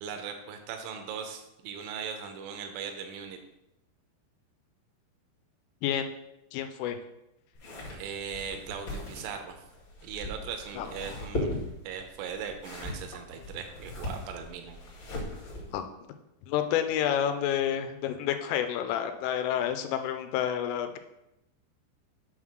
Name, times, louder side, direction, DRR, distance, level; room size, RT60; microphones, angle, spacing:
voice 1, 0.0-3.4 7.9-9.6 10.0-11.5 11.8-14.8, right 7 dB, 85° right, 5 dB, 3.1 m, -39 dB
voice 2, 6.5-7.0 10.8-10.9 15.7-15.8 16.5-21.0, left 10 dB, 90° left, 8 dB, 3.3 m, -29 dB
sound 1, 7.5-15.8, left 1 dB, 45° left, 1.6 m, -38 dB
8.2 x 3.7 x 6.3 m, 0.89 s
omnidirectional pair, 5.6 m